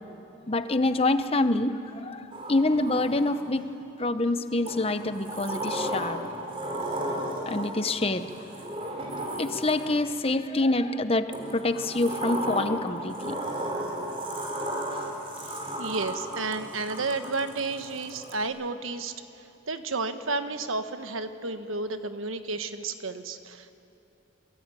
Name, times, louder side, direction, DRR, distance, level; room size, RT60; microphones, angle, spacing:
voice 1, 0.5-3.6 4.0-6.3 7.5-8.3 9.4-13.4, left 2 dB, 30° left, 10 dB, 0.9 m, -26 dB
Sliding door, 2.3-3.7 4.7-10.2 11.3-18.4, right 1 dB, 30° right, 3.9 m, -34 dB
voice 2, 15.4-19.1 19.7-23.7, right 3 dB, 90° right, 8 dB, 1.4 m, -32 dB
27.0 x 22.5 x 9.2 m, 3.0 s
head